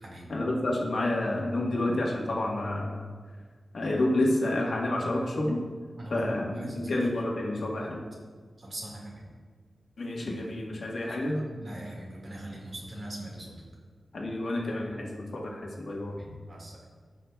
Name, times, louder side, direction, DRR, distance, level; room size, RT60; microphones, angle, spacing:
voice 1, 0.3-3.0 3.7-5.6 6.1-8.0 10.0-11.4 14.1-16.1, left 1 dB, 60° left, -2 dB, 1.4 m, -29 dB
voice 2, 6.0-7.1 7.5-7.8 8.6-9.2 10.9-13.6 16.1-16.7, right 1 dB, 50° right, -3 dB, 2.0 m, -41 dB
14.0 x 6.2 x 2.4 m, 1.6 s
wide cardioid pair, 155°, 0 cm